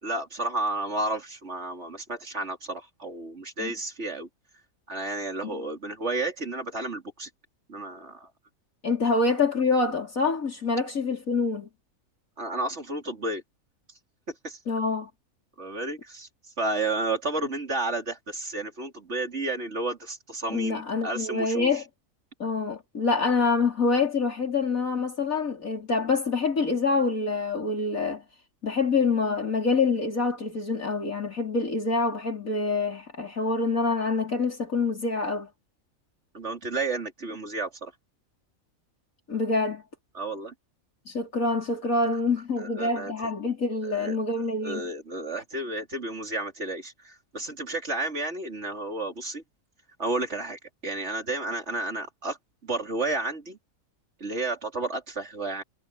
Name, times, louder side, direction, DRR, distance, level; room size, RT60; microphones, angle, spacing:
voice 1, 0.0-4.3 4.9-7.3 7.7-8.3 12.4-13.4 13.9-14.0 14.4-14.6 15.6-21.8 36.3-37.9 40.1-40.5 42.1-42.2 42.6-43.1 43.8-44.2 44.6-49.4 50.0-52.4 52.6-53.6 54.2-55.6, right 2 dB, 50° right, 3.9 m, -32 dB
voice 2, 8.8-11.7 14.7-15.1 20.5-21.8 22.4-28.2 28.6-35.5 39.3-39.8 41.1-44.8, left 4 dB, 70° left, 5.0 m, -26 dB
omnidirectional pair, 1.5 m